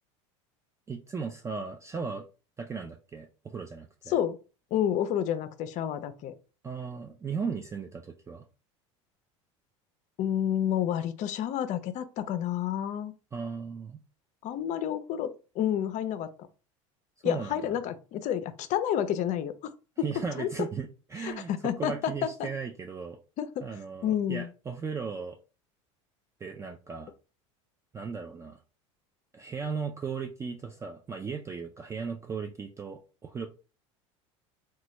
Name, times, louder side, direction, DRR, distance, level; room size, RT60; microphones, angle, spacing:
voice 1, 0.9-2.2 2.6-4.2 6.6-8.4 13.3-14.0 17.2-17.6 20.0-23.2 23.6-25.4 26.4-27.1 27.9-28.6 29.3-33.5, right 5 dB, 20° right, 0.3 m, -36 dB
voice 2, 4.7-6.3 10.2-13.1 14.4-16.3 17.2-19.7 20.0-20.1 20.4-20.5 21.2-22.5 23.4-23.6 24.0-24.5, left 10 dB, 50° left, 0.5 m, -30 dB
3.0 x 2.2 x 2.9 m
hypercardioid pair, 90°, 16 cm